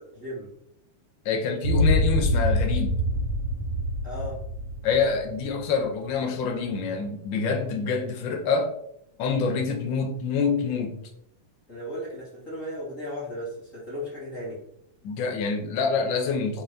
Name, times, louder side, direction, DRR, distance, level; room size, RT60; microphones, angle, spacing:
voice 1, 0.1-0.5 4.0-4.4 11.7-14.6, equal, 25° left, -7 dB, 2.7 m, -35 dB
voice 2, 1.2-3.0 4.8-8.7 9.2-11.0 15.0-16.6, left 5 dB, 65° left, 3 dB, 1.2 m, -26 dB
sound 1, 1.6-6.0, equal, 60° right, 1.3 m, -25 dB
9.3 x 5.4 x 2.8 m, 0.77 s
omnidirectional pair, 3.4 m